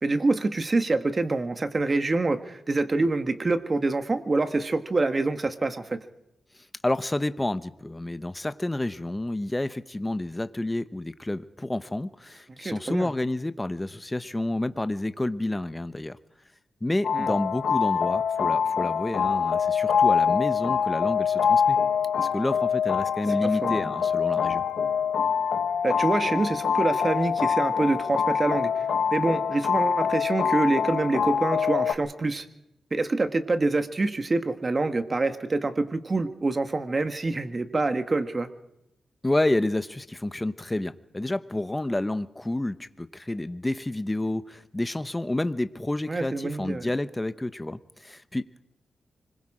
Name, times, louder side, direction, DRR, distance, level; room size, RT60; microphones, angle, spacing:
voice 1, 0.0-6.0 12.6-13.1 17.1-17.3 23.6-23.9 25.8-28.9 29.1-32.5 32.9-38.5 46.1-46.9, right 3 dB, 35° right, 9 dB, 1.5 m, -26 dB
voice 2, 6.8-16.2 16.8-21.8 22.2-24.6 39.2-48.7, left 1 dB, 15° left, 12 dB, 0.8 m, -29 dB
sound 1, 17.0-31.9, left 7 dB, 85° left, 1.2 m, -25 dB
25.0 x 21.5 x 5.0 m, 0.84 s
wide cardioid pair, 100°, 0 cm